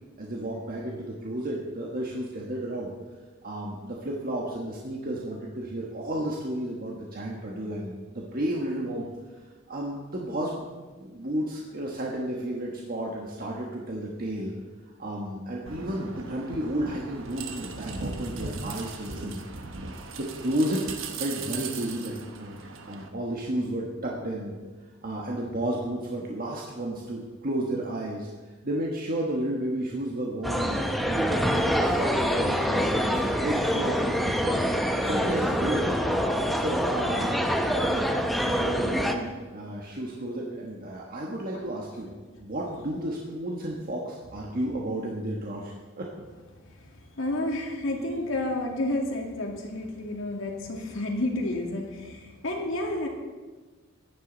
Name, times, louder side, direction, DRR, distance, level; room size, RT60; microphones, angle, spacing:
voice 1, 0.2-2.9 3.4-9.1 9.3-10.7 11.0-14.5 15.0-19.4 20.2-20.8 21.1-22.6 22.8-24.6 25.0-28.3 28.6-34.7 35.0-35.8 36.6-37.4 37.7-42.1 42.4-46.1, right 1 dB, 45° right, -2 dB, 1.4 m, -32 dB
sound 1, 15.7-23.1, right 4 dB, 75° right, 1.2 m, -38 dB
sound 2, 30.4-39.1, equal, ahead, 0.8 m, -26 dB
voice 2, 46.7-53.1, left 1 dB, 75° left, 0 dB, 2.3 m, -30 dB
15.0 x 11.0 x 4.0 m, 1.3 s
head